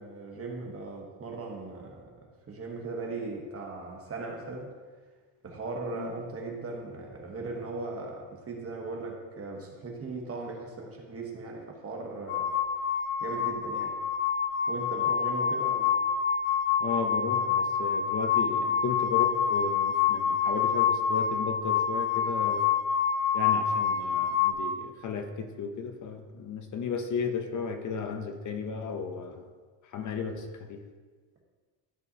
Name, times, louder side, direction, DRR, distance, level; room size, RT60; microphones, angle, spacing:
voice 1, 0.0-4.7 5.4-12.5 13.2-14.0 14.7-16.0, right 3 dB, 30° right, 0 dB, 1.0 m, -38 dB
sound 1, 12.3-24.5, left 7 dB, 80° left, 0.8 m, -27 dB
voice 2, 16.8-22.7 23.3-29.4 29.9-30.8, left 5 dB, 40° left, 6 dB, 0.6 m, -34 dB
12.5 x 5.4 x 2.8 m, 1.4 s
cardioid pair, 180°, 50 cm